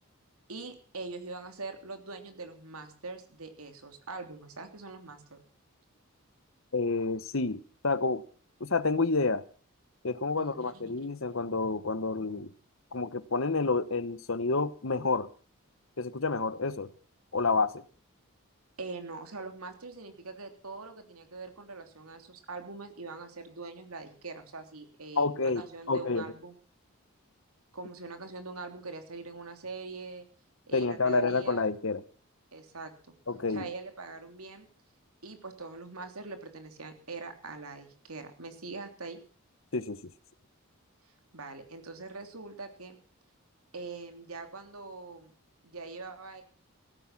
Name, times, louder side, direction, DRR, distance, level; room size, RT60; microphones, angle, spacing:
voice 1, 0.5-5.4 10.4-11.1 18.8-26.6 27.7-30.3 30.7-31.7 32.5-33.1 33.5-34.7 35.2-39.2 41.3-43.0 43.7-45.3 45.6-46.4, right 3 dB, 80° right, 3.2 m, -43 dB
voice 2, 6.7-8.2 8.6-9.4 10.0-12.5 12.9-15.3 16.0-16.9 17.3-17.7 25.2-25.6 25.9-26.2 30.7-32.0 33.3-33.7 39.7-40.0, left 3 dB, 65° left, 1.1 m, -29 dB
16.0 x 14.5 x 5.9 m
head